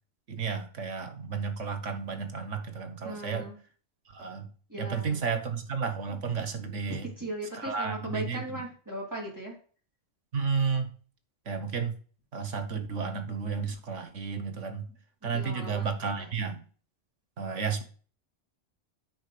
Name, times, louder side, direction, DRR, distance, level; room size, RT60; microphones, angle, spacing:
voice 1, 0.3-3.5 4.1-4.5 4.8-7.1 7.5-8.6 10.3-10.9 11.5-11.9 12.3-14.9 15.2-16.6 17.4-17.8, right 5 dB, 85° right, 8 dB, 1.7 m, -32 dB
voice 2, 3.0-3.6 4.7-5.3 7.2-9.5 15.3-15.9 16.2-16.3, right 1 dB, 15° right, -3 dB, 3.7 m, -38 dB
8.8 x 5.4 x 6.8 m, 0.41 s
omnidirectional pair, 1.2 m